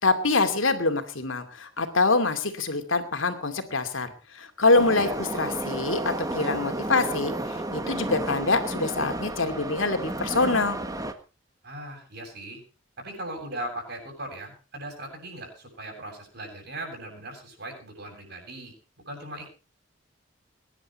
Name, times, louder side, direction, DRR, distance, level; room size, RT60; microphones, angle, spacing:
voice 1, 0.0-10.8, left 3 dB, 75° left, 7 dB, 2.5 m, -25 dB
Subway metro underground, 4.7-11.1, right 1 dB, 20° right, 1.5 m, -32 dB
voice 2, 11.6-12.6 13.0-18.7 19.1-19.5, right 1 dB, 55° right, 1 dB, 7.7 m, -38 dB
22.0 x 11.0 x 4.3 m, 0.34 s
head